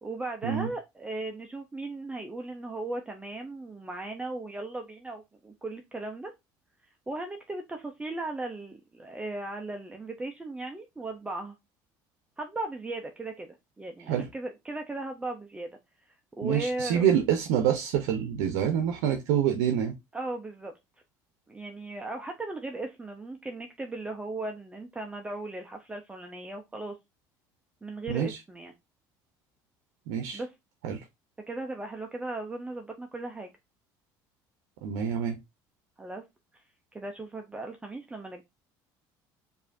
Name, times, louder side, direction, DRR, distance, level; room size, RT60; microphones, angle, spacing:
voice 1, 0.0-6.3 7.1-11.5 12.4-13.5 13.8-15.7 16.4-17.1 20.1-20.7 21.5-26.9 27.8-28.7 30.3-30.5 31.5-33.5 36.0-36.2 36.9-38.4, right 2 dB, 10° right, 0.6 m, -37 dB
voice 2, 16.4-19.9 28.1-28.4 30.1-30.4 30.8-31.0 34.8-35.4, right 9 dB, 85° right, 0.6 m, -26 dB
4.8 x 2.7 x 2.5 m
supercardioid pair, 100°, 9 cm